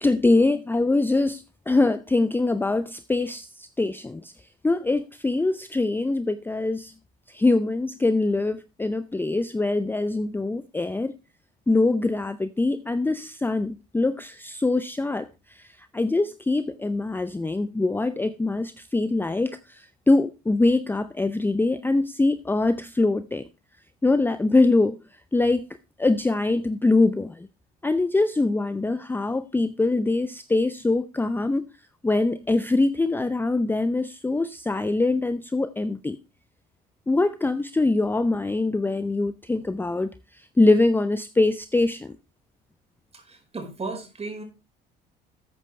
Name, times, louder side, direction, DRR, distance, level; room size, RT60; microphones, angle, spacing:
voice 1, 0.0-4.3 4.6-6.9 7.3-11.1 11.7-15.3 15.6-15.7 15.9-23.4 24.0-25.0 25.3-25.7 26.0-27.5 27.8-31.7 32.0-36.2 37.1-40.1 40.6-42.1, left 2 dB, 10° left, 0.5 m, -23 dB
voice 2, 43.1-44.4, right 3 dB, 30° right, 4.8 m, -35 dB
13.5 x 8.3 x 3.2 m
supercardioid pair, 75°, 21 cm